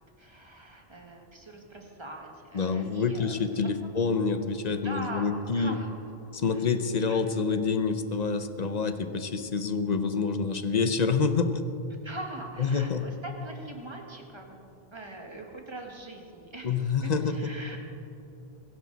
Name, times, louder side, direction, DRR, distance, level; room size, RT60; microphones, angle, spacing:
voice 1, 0.2-3.4 3.9-4.0 4.8-5.9 6.5-6.6 7.1-7.2 12.0-14.6 14.9-17.8, right 1 dB, 25° right, 1 dB, 1.8 m, -42 dB
voice 2, 2.5-5.8 6.3-11.5 12.6-13.1 16.6-17.5, left 5 dB, 45° left, 9 dB, 0.8 m, -27 dB
22.0 x 11.0 x 4.1 m, 2.8 s
omnidirectional pair, 1.1 m